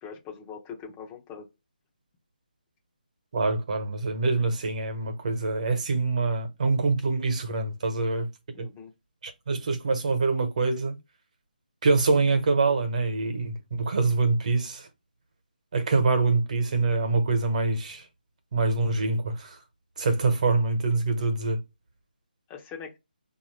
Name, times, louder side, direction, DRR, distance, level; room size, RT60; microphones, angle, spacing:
voice 1, 0.0-1.5 8.5-8.9 22.5-23.0, left 6 dB, 15° left, 0.9 m, -42 dB
voice 2, 3.3-8.3 8.6-8.7 9.2-11.0 11.8-14.9 15.7-18.1 18.5-19.6 20.0-21.6, right 3 dB, 50° right, 1.2 m, -25 dB
5.2 x 2.7 x 3.2 m
figure-of-eight pair, 155°, 5 cm